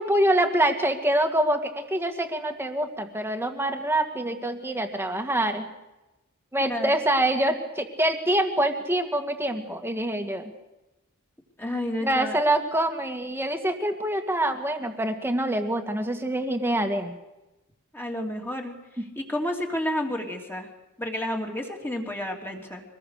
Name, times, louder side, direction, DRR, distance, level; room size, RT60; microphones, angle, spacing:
voice 1, 0.0-5.7 6.5-10.5 12.0-17.1 19.0-19.1, right 1 dB, 10° right, 5 dB, 2.3 m, -25 dB
voice 2, 11.6-12.4 17.9-18.7 19.1-20.7 21.0-22.8, left 1 dB, 10° left, 0 dB, 3.3 m, -30 dB
25.0 x 20.5 x 6.8 m, 0.98 s
head